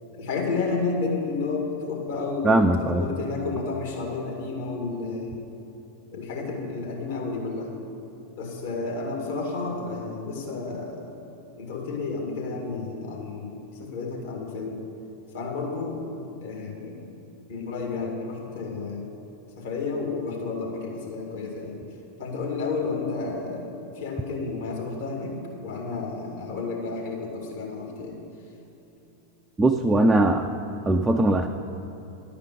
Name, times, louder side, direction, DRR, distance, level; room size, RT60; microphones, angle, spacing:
voice 1, 0.1-2.6 2.9-5.4 6.1-7.7 8.4-11.2 11.6-14.8 15.3-16.1 16.4-17.0 17.5-19.1 19.6-21.8 22.2-28.2, left 4 dB, 55° left, 0 dB, 2.2 m, -31 dB
voice 2, 2.4-3.0 29.6-30.5 30.8-31.5, right 2 dB, 10° right, 3 dB, 0.5 m, -20 dB
11.0 x 5.1 x 8.5 m, 2.9 s
figure-of-eight pair, 90°, 0 cm